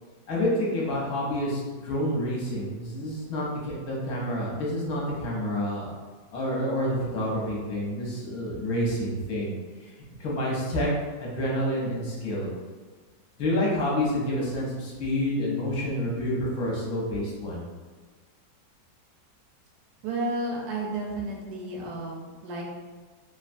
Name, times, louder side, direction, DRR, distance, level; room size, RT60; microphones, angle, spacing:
voice 1, 0.3-5.9 6.3-9.5 9.8-9.9 10.2-10.9 11.2-12.5 13.4-17.6, left 1 dB, 60° left, -4 dB, 1.1 m, -28 dB
voice 2, 20.0-22.6, right 2 dB, 70° right, -2 dB, 1.0 m, -32 dB
3.2 x 2.2 x 2.5 m, 1.4 s
omnidirectional pair, 2.0 m